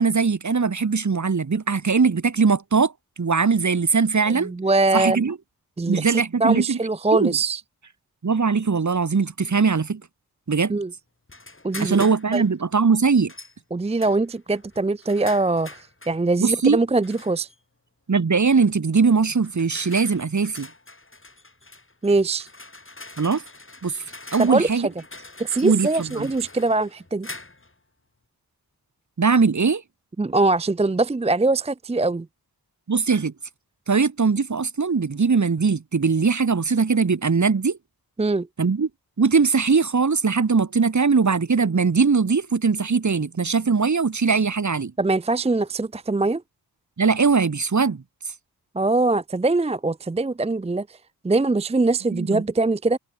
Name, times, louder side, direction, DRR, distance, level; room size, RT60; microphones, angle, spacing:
voice 1, 0.0-2.9 3.2-4.5 4.9-5.4 5.9-6.8 7.1-7.4 8.2-10.0 10.5-10.8 11.8-13.3 16.4-16.8 18.1-20.7 23.2-23.4 23.8-24.0 24.3-24.9 25.6-26.3 29.2-29.8 32.9-33.3 33.9-37.8 38.6-38.9 39.2-44.9 47.0-48.0 52.1-52.4, right 5 dB, 45° right, 1.8 m, -20 dB
voice 2, 4.3-5.2 5.8-7.6 10.7-10.9 11.6-12.4 13.7-17.5 22.0-22.5 24.4-24.9 25.4-27.3 30.2-32.3 38.2-38.5 45.0-46.4 48.7-51.0 51.2-53.0, right 3 dB, 15° right, 0.6 m, -22 dB
sound 1, 11.3-12.5 13.3-13.6 14.0-16.2 17.0-17.6 18.6-18.8 19.4-27.7, left 2 dB, 30° left, 6.4 m, -43 dB
cardioid pair, 50°, 40 cm